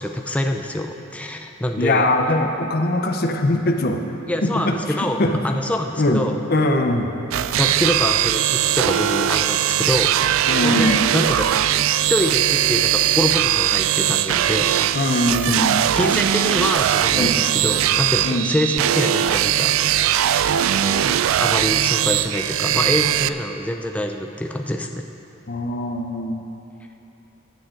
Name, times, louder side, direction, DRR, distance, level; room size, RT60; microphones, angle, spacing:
voice 1, 0.0-2.1 4.3-6.4 7.6-10.2 10.6-11.5 12.0-14.7 15.0-15.7 15.9-19.8 20.7-25.0, left 1 dB, 5° left, 4 dB, 0.4 m, -25 dB
voice 2, 1.8-4.0 4.4-4.7 5.2-5.5 6.0-6.2 6.5-7.1 10.5-11.0 14.9-15.8 17.1-17.3 18.2-18.4 25.5-26.4, left 1 dB, 50° left, 4 dB, 0.7 m, -21 dB
sound 1, 7.3-23.3, right 11 dB, 85° right, 0.3 m, -20 dB
15.5 x 8.9 x 3.8 m, 2.9 s
head